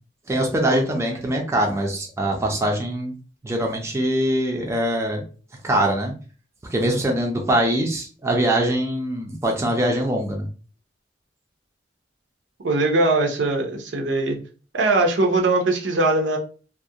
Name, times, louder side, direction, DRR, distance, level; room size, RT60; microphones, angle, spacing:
voice 1, 0.3-3.1 3.4-5.2 5.6-6.1 6.7-10.5, right 1 dB, 15° right, 1 dB, 0.4 m, -23 dB
voice 2, 12.6-14.4 14.7-16.4, right 2 dB, 70° right, 3 dB, 0.6 m, -21 dB
2.3 x 2.1 x 2.7 m, 0.38 s
head